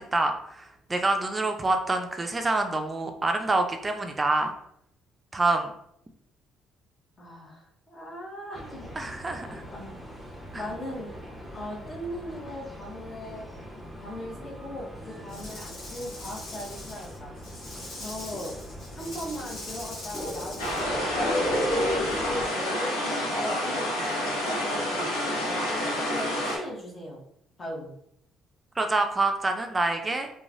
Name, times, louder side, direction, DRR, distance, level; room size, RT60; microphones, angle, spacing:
voice 1, 0.0-4.5 5.3-5.7 9.0-9.6 10.5-10.6 28.8-30.3, right 2 dB, 25° right, 5 dB, 0.4 m, -26 dB
voice 2, 7.2-8.9 9.7-10.0 10.5-11.1 11.5-13.5 14.0-17.4 18.0-18.5 18.9-21.6 22.0-22.9 23.2-27.2 27.6-27.9, equal, 40° left, -3 dB, 1.0 m, -38 dB
sound 1, 8.5-22.5, equal, 10° left, 0.8 m, -36 dB
Rattle / Rattle (instrument), 15.3-20.8, left 1 dB, 65° left, 1.0 m, -42 dB
sound 2, 20.6-26.6, left 1 dB, 90° left, 0.8 m, -29 dB
3.0 x 2.2 x 2.5 m, 0.73 s
hypercardioid pair, 55°, 0 cm